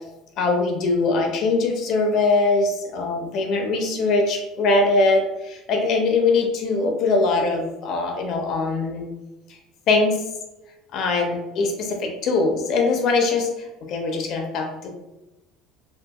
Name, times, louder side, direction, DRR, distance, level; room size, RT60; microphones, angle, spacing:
voice 1, 0.4-9.1 9.9-10.2 10.9-13.5 13.8-14.9, left 3 dB, 50° left, 3 dB, 0.4 m, -22 dB
2.6 x 2.4 x 2.3 m, 0.98 s
cardioid pair, 140°, 0 cm